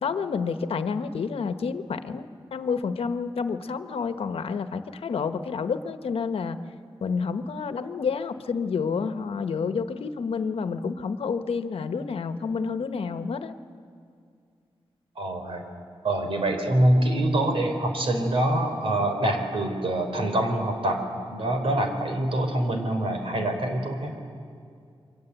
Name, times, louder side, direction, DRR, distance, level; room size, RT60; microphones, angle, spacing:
voice 1, 0.0-6.6 7.0-13.5, left 5 dB, 85° left, 9 dB, 1.1 m, -29 dB
voice 2, 15.2-15.7 16.0-21.0 21.3-24.2, right 1 dB, 75° right, 5 dB, 3.7 m, -25 dB
28.5 x 24.0 x 8.2 m, 2.3 s
wide cardioid pair, 115°, 10 cm